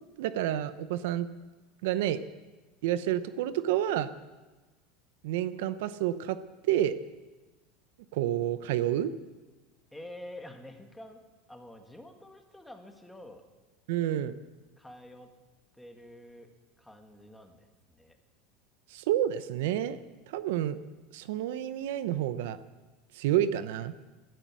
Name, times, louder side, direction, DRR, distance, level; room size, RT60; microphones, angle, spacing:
voice 1, 0.2-1.3 1.8-2.2 2.8-4.1 5.2-6.4 6.7-6.9 8.1-9.1 13.9-14.3 18.9-20.0 20.3-20.8 21.1-22.6 23.1-23.9, right 12 dB, 75° right, 14 dB, 0.8 m, -29 dB
voice 2, 9.9-11.2 11.5-13.4 14.8-15.3 15.8-16.5 16.8-18.2, left 1 dB, 5° left, 4 dB, 1.9 m, -48 dB
18.5 x 12.5 x 6.2 m, 1.2 s
supercardioid pair, 135°, 0 cm